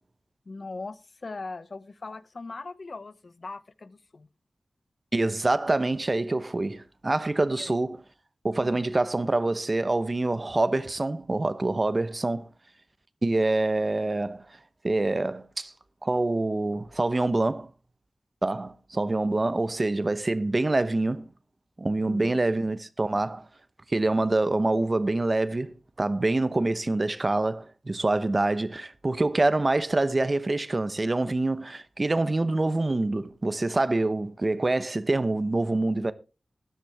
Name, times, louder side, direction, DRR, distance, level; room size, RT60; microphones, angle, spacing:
voice 1, 0.5-4.3 7.5-7.7 8.6-8.8 22.1-22.4, left 3 dB, 60° left, 0.8 m, -40 dB
voice 2, 5.1-8.0 8.4-12.5 13.2-14.5 14.8-15.7 16.0-17.7 18.4-21.3 21.8-23.5 23.9-36.1, right 2 dB, 35° right, 0.9 m, -26 dB
13.5 x 10.5 x 3.5 m
wide cardioid pair, 65°, 0 cm